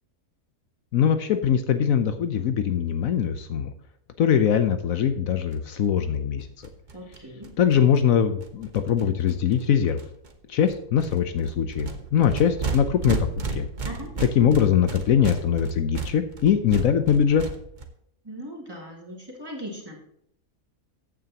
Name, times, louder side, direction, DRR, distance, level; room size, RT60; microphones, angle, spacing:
voice 1, 0.9-3.7 4.2-6.5 7.6-10.0 10.5-13.7 14.2-17.5, left 8 dB, 70° left, 9 dB, 1.1 m, -22 dB
sound 1, 5.5-5.6 5.8-5.9 6.1-6.2 6.4-9.6 10.0-10.3 10.6-17.9, right 4 dB, 35° right, 1.1 m, -34 dB
voice 2, 6.9-7.5 13.8-14.1 18.2-20.0, equal, 15° right, -2 dB, 2.8 m, -38 dB
14.5 x 9.1 x 2.9 m, 0.71 s
omnidirectional pair, 1.5 m